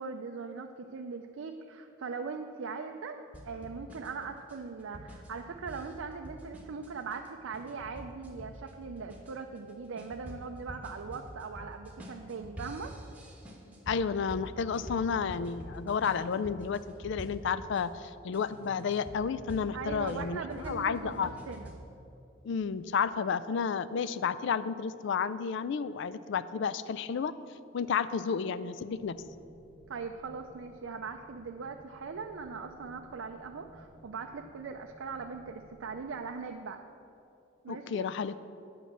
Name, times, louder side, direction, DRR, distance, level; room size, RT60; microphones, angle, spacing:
voice 1, 0.0-13.0 19.7-21.7 29.9-36.8 37.6-38.1, right 5 dB, 75° right, 4 dB, 0.4 m, -40 dB
sound 1, 3.3-17.8 18.3-21.8, equal, 10° right, 1.2 m, -46 dB
voice 2, 13.9-20.4 20.7-21.3 22.4-27.3 27.7-29.2 37.7-38.5, left 6 dB, 60° left, 15 dB, 0.3 m, -31 dB
sound 2, 29.0-36.1, equal, 15° left, 2.2 m, -57 dB
9.3 x 5.5 x 7.3 m, 2.7 s
head